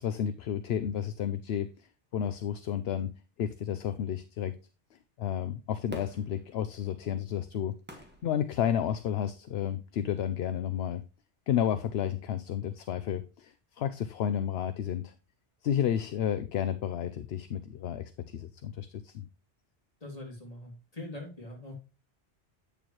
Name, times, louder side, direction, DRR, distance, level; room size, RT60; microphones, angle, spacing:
voice 1, 0.0-1.9 2.1-3.1 3.4-4.5 5.2-11.0 11.5-15.1 15.6-19.2, left 9 dB, 70° left, 0.8 m, -31 dB
Fireworks, 5.9-9.2 9.8-9.9, right 1 dB, 10° right, 1.5 m, -48 dB
voice 2, 20.0-21.7, left 1 dB, 35° left, 2.7 m, -43 dB
8.7 x 6.9 x 3.1 m
omnidirectional pair, 1.2 m